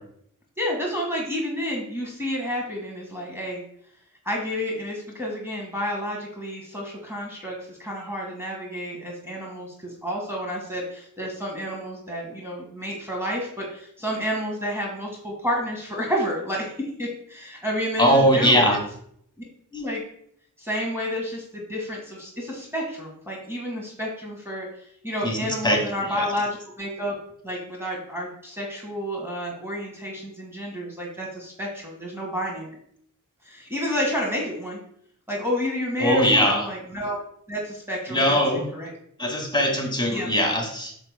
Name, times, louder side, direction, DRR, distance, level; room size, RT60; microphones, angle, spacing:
voice 1, 0.6-3.6 4.2-18.8 19.7-20.0 20.6-24.7 25.0-27.1 27.4-32.7 33.4-34.8 35.3-37.2 37.5-38.9 40.1-40.3, equal, 5° right, -3 dB, 1.7 m, -30 dB
voice 2, 18.0-18.8 25.2-25.4 25.6-26.3 36.0-36.7 38.1-38.6 39.2-41.0, equal, 15° left, -1 dB, 2.0 m, -21 dB
9.0 x 6.7 x 2.2 m, 0.66 s
wide cardioid pair, 75°, 33 cm